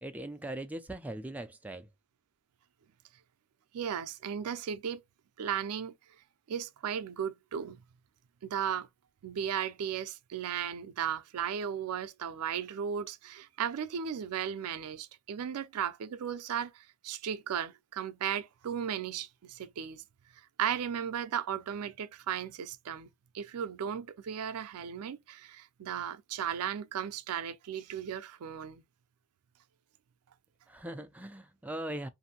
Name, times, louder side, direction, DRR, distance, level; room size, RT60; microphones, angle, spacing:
voice 1, 0.0-1.9 30.7-32.1, right 1 dB, 5° right, 0.3 m, -40 dB
voice 2, 3.7-5.0 5.4-5.9 6.5-7.8 8.4-8.9 9.2-20.0 20.6-23.1 23.3-28.8, right 8 dB, 80° right, 0.4 m, -35 dB
2.6 x 2.5 x 2.7 m
head